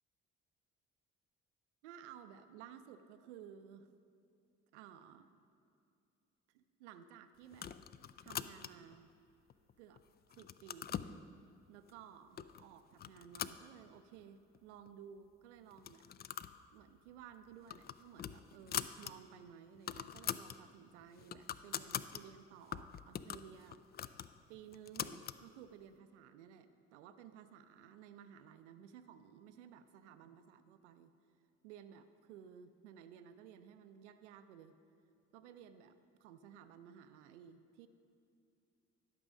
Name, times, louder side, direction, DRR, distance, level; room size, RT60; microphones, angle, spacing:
voice 1, 1.8-3.9 4.7-5.3 6.5-7.9 8.2-9.1 9.8-10.0 10.4-11.2 11.7-16.1 16.7-23.8 24.5-31.1 31.6-34.7 35.3-37.9, right 8 dB, 85° right, 11 dB, 0.5 m, -56 dB
sound 1, 7.5-8.9 9.5-10.0 10.3-11.1 11.9-12.0 12.4-12.6 13.0-14.2 14.5-14.6 14.9-15.0 15.7-16.6 16.9-17.1 17.5-19.1 19.5-19.6 19.7-20.6 21.0-22.2 22.7-25.4, left 9 dB, 30° left, 0.4 m, -43 dB
11.5 x 6.1 x 5.0 m, 2.5 s
hypercardioid pair, 50°, 35 cm